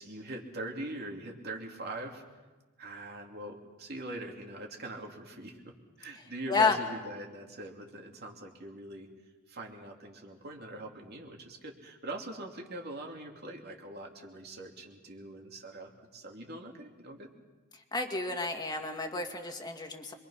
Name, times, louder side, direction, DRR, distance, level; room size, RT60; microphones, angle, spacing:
voice 1, 0.0-2.2 2.8-9.1 9.5-17.3, right 1 dB, 50° right, 1 dB, 2.9 m, -42 dB
voice 2, 17.9-20.1, left 4 dB, 20° left, 4 dB, 2.1 m, -30 dB
27.0 x 23.5 x 5.8 m, 1.2 s
head